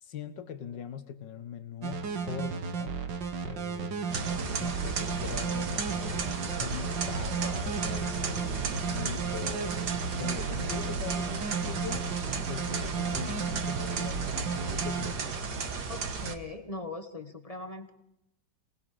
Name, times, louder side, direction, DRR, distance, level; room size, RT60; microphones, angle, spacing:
voice 1, 0.0-3.0 3.4-4.3 4.6-6.2 6.6-12.1 12.5-14.4 14.7-15.3, left 8 dB, 75° left, 10 dB, 1.8 m, -42 dB
sound 1, 1.8-15.1, right 5 dB, 90° right, 2.1 m, -34 dB
sound 2, 4.1-16.3, right 4 dB, 65° right, 2.0 m, -34 dB
voice 2, 15.9-17.9, left 3 dB, 20° left, 6 dB, 1.4 m, -40 dB
27.0 x 19.0 x 5.0 m, 0.84 s
omnidirectional pair, 1.9 m